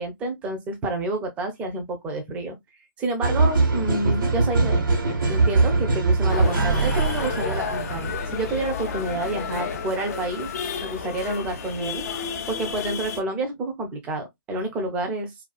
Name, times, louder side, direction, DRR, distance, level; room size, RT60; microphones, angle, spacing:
voice 1, 0.0-2.6 3.0-4.8 5.3-10.5 10.8-12.0 12.5-15.3, right 2 dB, 10° right, 0.5 m, -29 dB
sound 1, 3.2-9.1, right 3 dB, 70° right, 1.2 m, -22 dB
sound 2, 6.3-13.2, left 6 dB, 45° left, 0.5 m, -31 dB
2.5 x 2.3 x 2.3 m
hypercardioid pair, 145°, 11 cm